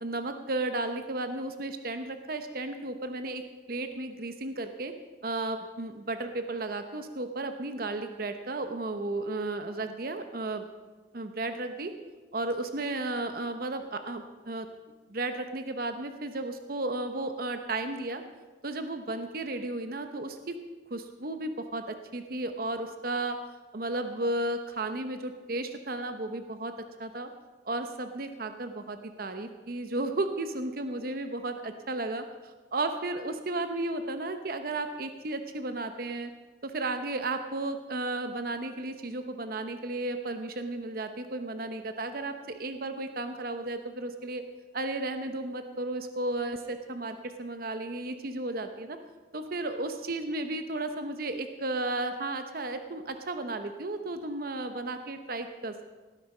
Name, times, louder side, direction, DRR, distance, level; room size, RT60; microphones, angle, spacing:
voice 1, 0.0-4.9 5.2-10.7 11.1-11.9 12.3-14.7 15.1-18.2 18.6-20.6 20.9-23.4 23.7-26.7 27.0-27.3 27.7-32.2 32.7-36.3 36.6-44.4 44.7-49.0 49.3-55.8, right 2 dB, 55° right, 8 dB, 0.8 m, -34 dB
18.0 x 10.0 x 5.5 m, 1.3 s
head